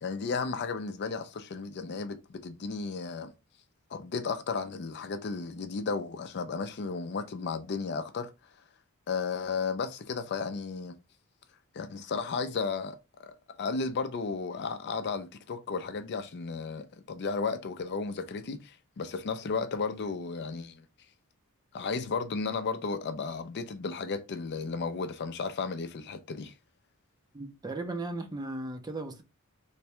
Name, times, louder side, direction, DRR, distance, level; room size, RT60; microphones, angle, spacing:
voice 1, 0.0-3.3 3.9-8.3 9.1-11.0 11.7-20.8 21.7-26.5, left 4 dB, 50° left, 0.4 m, -34 dB
voice 2, 27.3-29.2, right 2 dB, 20° right, 0.5 m, -36 dB
3.3 x 2.2 x 4.3 m
head